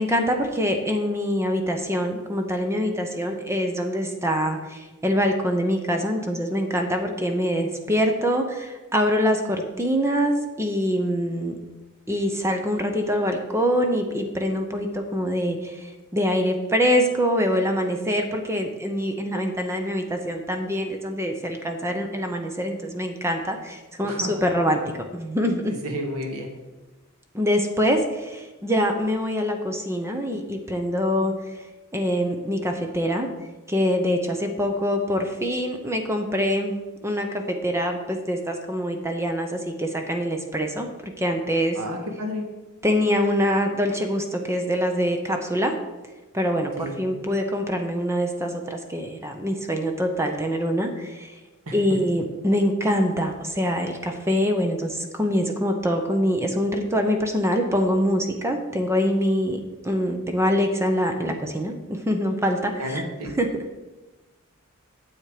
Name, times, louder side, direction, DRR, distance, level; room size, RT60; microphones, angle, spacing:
voice 1, 0.0-11.5 12.1-24.8 25.1-25.7 27.3-31.6 31.9-33.3 33.7-40.9 41.2-41.8 42.8-45.7 46.3-51.3 51.7-63.0 63.4-63.5, equal, 15° right, 4 dB, 0.8 m, -24 dB
voice 2, 24.0-24.3 25.8-26.5 41.7-42.4 46.8-46.9 51.7-51.8 62.8-63.3, equal, 80° right, 2 dB, 1.7 m, -31 dB
9.5 x 7.4 x 4.9 m, 1.1 s
head